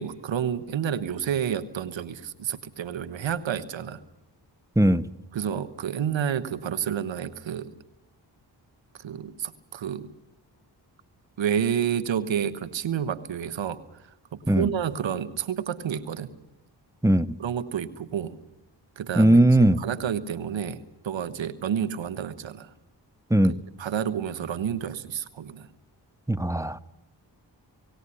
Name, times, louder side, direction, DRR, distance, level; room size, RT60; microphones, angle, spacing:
voice 1, 0.0-4.0 5.3-7.7 8.9-10.1 11.4-16.3 17.4-18.4 19.0-22.7 23.5-25.7, right 8 dB, 80° right, 10 dB, 1.3 m, -30 dB
voice 2, 19.2-19.8 23.3-23.5 26.3-26.8, right 1 dB, 5° right, 13 dB, 1.0 m, -19 dB
19.0 x 16.5 x 9.9 m, 0.86 s
supercardioid pair, 40°, 45 cm